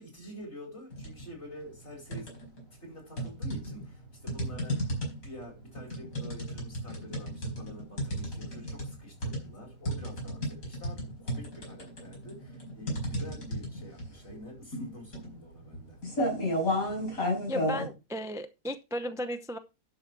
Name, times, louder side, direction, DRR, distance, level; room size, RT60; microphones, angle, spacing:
voice 1, 0.0-2.3 2.8-16.0, equal, 50° left, 5.0 m, -47 dB
sound 1, 0.9-1.3 1.7-2.6 3.2-17.9, equal, 75° left, 5.2 m, -33 dB
voice 2, 17.5-19.6, equal, 5° right, 0.4 m, -35 dB
11.5 x 6.1 x 4.6 m
omnidirectional pair, 1.5 m